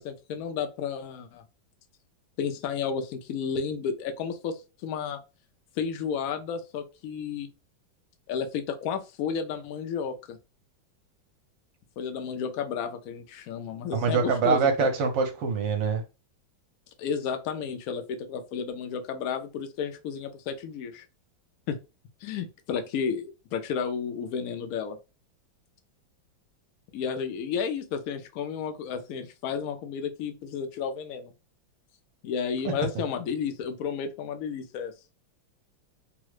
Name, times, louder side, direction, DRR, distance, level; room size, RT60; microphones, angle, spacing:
voice 1, 0.0-1.4 2.4-5.2 5.8-7.5 8.3-10.4 12.0-14.9 17.0-21.0 21.7-21.8 22.2-25.0 26.9-31.3 32.2-34.9, left 6 dB, 90° left, 0.7 m, -32 dB
voice 2, 13.9-16.0, right 5 dB, 70° right, 1.4 m, -24 dB
3.6 x 2.1 x 3.1 m
omnidirectional pair, 2.2 m